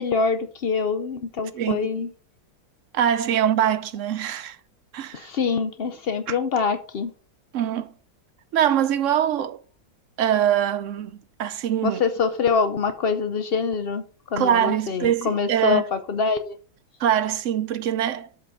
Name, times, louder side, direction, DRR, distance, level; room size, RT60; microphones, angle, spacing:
voice 1, 0.0-2.1 5.1-7.1 11.8-14.0 14.3-16.6, left 5 dB, 85° left, 0.5 m, -25 dB
voice 2, 1.5-1.9 2.9-4.6 4.9-5.3 6.3-6.4 7.5-7.9 8.5-9.6 10.2-12.0 14.4-15.8 17.0-18.3, right 10 dB, 65° right, 0.8 m, -23 dB
8.0 x 5.1 x 5.4 m
omnidirectional pair, 1.9 m